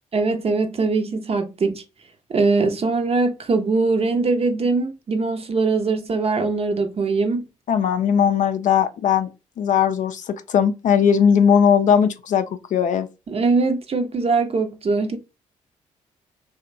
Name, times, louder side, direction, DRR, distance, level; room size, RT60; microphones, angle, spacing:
voice 1, 0.1-1.8 2.3-7.4 13.3-15.2, right 3 dB, 40° right, 0.6 m, -21 dB
voice 2, 7.7-9.3 9.6-12.5 12.7-13.1, left 7 dB, 50° left, 0.4 m, -18 dB
2.9 x 2.2 x 2.5 m
hypercardioid pair, 40°, 16 cm